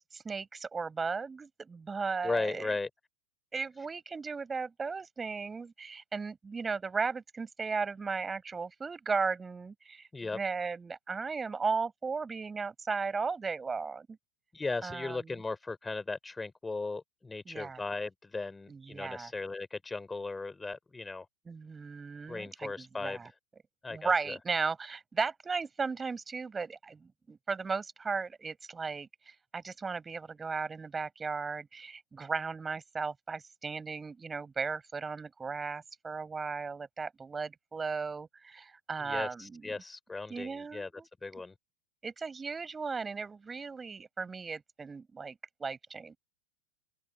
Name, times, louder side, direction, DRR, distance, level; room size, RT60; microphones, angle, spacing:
voice 1, 0.1-2.7 3.5-14.2 14.8-15.2 17.5-17.8 18.7-19.3 21.5-23.3 23.9-39.7 40.3-41.1 42.0-46.2, right 4 dB, 15° right, 5.0 m, -36 dB
voice 2, 2.2-2.9 10.1-10.4 14.5-21.3 22.3-23.3 23.8-24.4 39.0-40.9 41.2-41.5, left 3 dB, 10° left, 3.5 m, -37 dB
open air
figure-of-eight pair, 90°, 0 cm